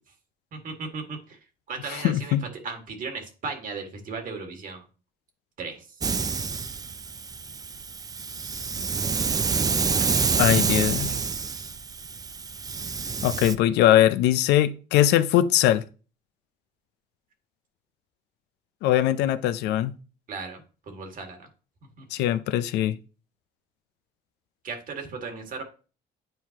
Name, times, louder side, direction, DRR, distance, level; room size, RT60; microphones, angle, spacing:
voice 1, 0.5-1.4 1.7-4.9 5.6-5.9 9.8-10.1 10.5-11.1 20.3-21.5 22.0-22.1 24.6-25.6, right 4 dB, 55° right, 1.9 m, -37 dB
voice 2, 1.9-2.4 10.4-11.1 13.2-15.8 18.8-19.9 22.1-23.0, left 12 dB, 85° left, 0.5 m, -21 dB
Hiss, 6.0-13.5, right 5 dB, 20° right, 0.4 m, -27 dB
9.1 x 4.6 x 2.9 m
cardioid pair, 110°, 17 cm